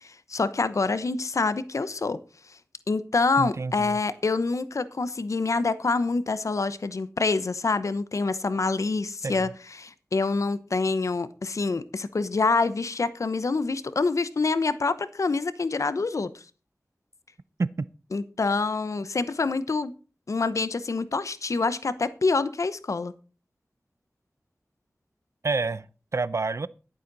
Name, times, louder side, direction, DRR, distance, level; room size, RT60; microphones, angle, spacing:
voice 1, 0.0-2.2 2.9-9.5 9.8-16.3 18.1-19.9 20.3-23.1, left 3 dB, 75° left, 0.8 m, -26 dB
voice 2, 3.4-4.0 9.2-9.5 17.6-17.9 25.4-25.9 26.1-26.7, right 3 dB, 65° right, 0.6 m, -28 dB
11.5 x 10.0 x 4.0 m
wide cardioid pair, 50°, 5 cm